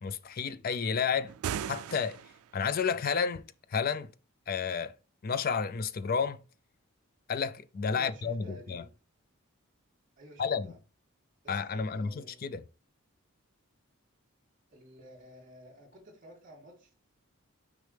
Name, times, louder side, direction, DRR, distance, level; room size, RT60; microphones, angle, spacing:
voice 1, 0.0-1.3 1.7-2.2 2.5-3.4 3.7-4.1 4.5-4.9 5.2-6.4 7.3-8.8 10.4-10.7 11.5-12.6, left 6 dB, 45° left, 0.4 m, -31 dB
sound 1, 1.3-2.6, right 9 dB, 90° right, 0.3 m, -37 dB
voice 2, 7.9-8.9 10.2-10.8 11.4-12.4 14.7-17.1, right 1 dB, 40° right, 3.1 m, -52 dB
6.3 x 5.2 x 3.4 m
head